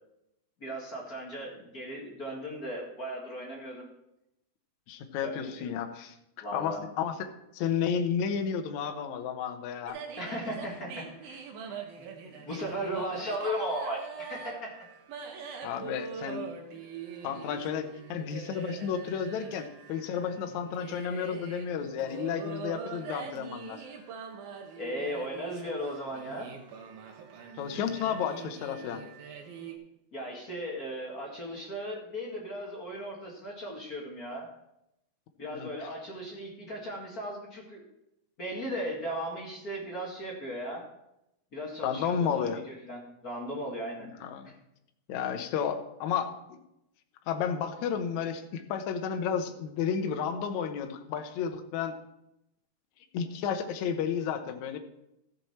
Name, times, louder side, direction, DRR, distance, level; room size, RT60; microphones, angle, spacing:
voice 1, 0.6-3.9 5.2-5.7 6.4-6.8 10.2-14.8 24.8-26.5 30.1-34.5 35.4-37.9 38.4-40.9 41.5-44.1 44.4-44.6, equal, 35° left, -2 dB, 1.6 m, -37 dB
voice 2, 4.9-6.2 6.5-7.1 7.5-10.0 15.6-16.5 17.2-23.8 27.6-29.0 35.5-35.7 41.8-42.6 44.2-44.5 45.1-46.6 47.3-51.9 53.1-54.8, left 7 dB, 70° left, 6 dB, 2.0 m, -32 dB
sound 1, 9.9-29.8, right 6 dB, 85° right, 3.0 m, -43 dB
14.0 x 7.2 x 4.3 m, 0.83 s
omnidirectional pair, 4.1 m